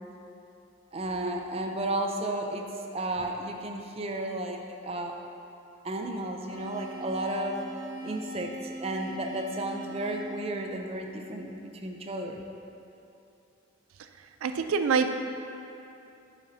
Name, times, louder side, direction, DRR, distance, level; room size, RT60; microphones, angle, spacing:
voice 1, 0.9-2.7 2.9-5.2 5.8-7.6 8.0-12.4, right 1 dB, 30° right, 3 dB, 0.4 m, -33 dB
sound 1, 6.5-11.6, right 1 dB, 45° left, 1.1 m, -41 dB
voice 2, 14.0-15.2, right 5 dB, 85° right, 8 dB, 0.4 m, -27 dB
9.4 x 7.4 x 2.7 m, 2.8 s
head